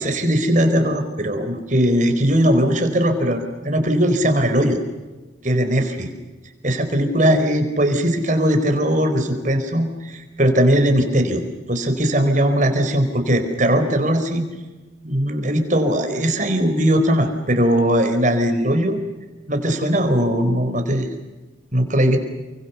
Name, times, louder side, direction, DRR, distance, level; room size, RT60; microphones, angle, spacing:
voice 1, 0.0-4.8 5.4-6.1 6.6-11.4 11.7-14.4 15.0-19.0 19.5-21.1 21.7-22.2, equal, 40° right, 6 dB, 4.4 m, -19 dB
30.0 x 24.0 x 7.0 m, 1.2 s
head